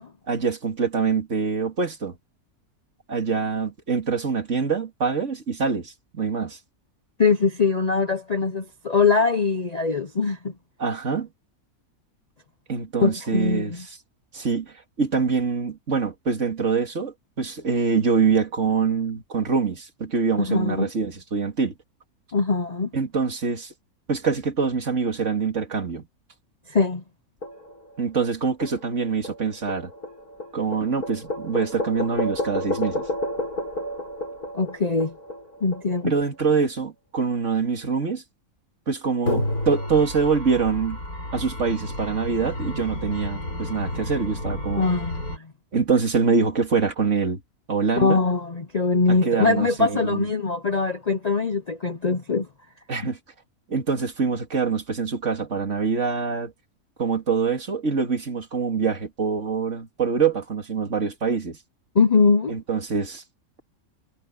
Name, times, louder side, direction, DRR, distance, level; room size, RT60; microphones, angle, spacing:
voice 1, 0.3-2.2 3.1-6.6 10.8-11.3 12.7-14.0 14.3-21.7 22.9-23.7 24.1-26.1 28.0-29.9 30.5-33.1 36.0-38.2 38.9-41.0 41.3-44.9 45.7-47.4 47.7-48.2 49.1-50.3 52.9-53.2 53.7-56.5 57.0-61.6 62.5-63.2, right 5 dB, 55° right, 2.6 m, -25 dB
voice 2, 7.2-10.5 13.0-13.8 20.4-20.9 22.3-22.9 26.7-27.0 34.5-35.1 35.6-36.1 44.8-45.5 48.0-52.5 53.0-53.1 61.9-62.6, left 4 dB, 40° left, 0.6 m, -22 dB
sound 1, 27.4-28.1 28.6-36.1 39.3-45.4, left 1 dB, 85° left, 6.4 m, -31 dB
omnidirectional pair, 1.5 m